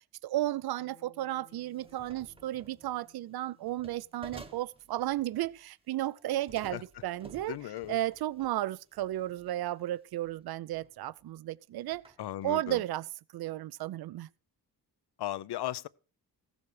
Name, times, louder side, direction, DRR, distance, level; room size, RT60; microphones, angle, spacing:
voice 1, 0.2-7.6 7.9-12.0 12.4-13.0 13.3-14.3, right 14 dB, 70° right, 0.5 m, -34 dB
Bass guitar, 0.8-5.2, left 3 dB, 50° left, 1.5 m, -64 dB
sound 1, 1.5-3.0 3.7-5.7 6.0-9.7 10.2-10.4 10.7-11.2 11.8-12.8, right 3 dB, 15° right, 0.8 m, -54 dB
voice 2, 7.5-8.0 12.2-12.8 15.2-15.9, left 13 dB, 75° left, 0.6 m, -36 dB
15.5 x 7.1 x 4.8 m
wide cardioid pair, 140°, 40 cm